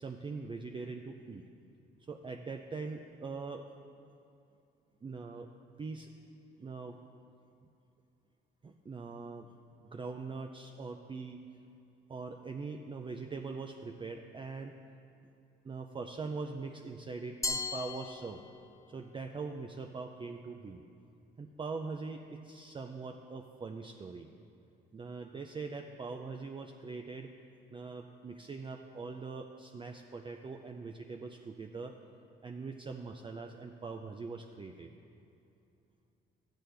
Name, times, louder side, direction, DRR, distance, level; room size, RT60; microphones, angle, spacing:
voice 1, 0.0-1.4 2.1-3.6 5.0-5.5 5.8-6.1 6.6-7.0 8.6-9.5 9.9-11.4 12.1-14.8 15.6-18.4 18.9-20.8 21.4-24.3 24.9-27.3 27.7-31.9 32.4-34.9, right 4 dB, 25° right, 4 dB, 0.4 m, -42 dB
Glass, 17.4-18.9, left 3 dB, 15° left, 0.6 m, -37 dB
12.5 x 7.6 x 3.3 m, 2.6 s
cardioid pair, 90°, 20 cm